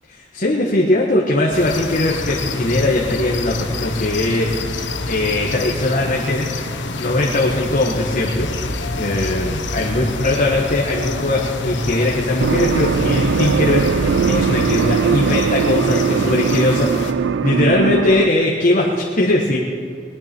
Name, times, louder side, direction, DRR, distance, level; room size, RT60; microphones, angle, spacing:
voice 1, 0.1-4.5 4.8-6.5 6.9-16.9 17.4-19.6, left 1 dB, 45° left, -2 dB, 1.5 m, -20 dB
sound 1, 1.5-17.1, left 3 dB, 75° left, 1.1 m, -27 dB
sound 2, 8.2-16.2, equal, 20° right, 2.3 m, -35 dB
sound 3, 12.4-18.3, right 6 dB, 75° right, 0.3 m, -20 dB
20.0 x 12.0 x 4.6 m, 2.2 s
head